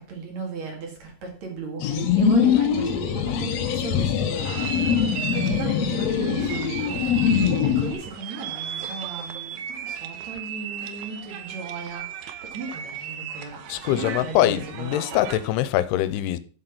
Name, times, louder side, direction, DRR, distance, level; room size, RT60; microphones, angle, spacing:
voice 1, 0.0-7.0 7.3-12.1 12.4-15.2, right 4 dB, 50° right, 3.2 m, -36 dB
sound 1, 1.8-7.9, left 7 dB, 75° left, 1.5 m, -23 dB
sound 2, 4.4-15.6, right 9 dB, 75° right, 1.9 m, -36 dB
voice 2, 13.7-16.4, left 13 dB, 90° left, 2.7 m, -23 dB
7.9 x 7.3 x 6.0 m
omnidirectional pair, 4.6 m